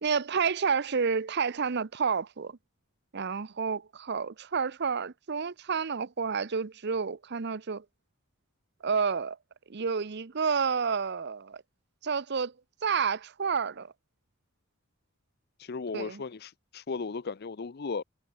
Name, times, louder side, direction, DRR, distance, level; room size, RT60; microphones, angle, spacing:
voice 1, 0.0-2.6 3.1-7.8 8.8-9.4 9.7-11.6 12.0-12.5 12.8-13.9 15.9-16.2, right 5 dB, 55° right, 0.7 m, -30 dB
voice 2, 15.6-18.0, left 4 dB, 50° left, 0.6 m, -36 dB
head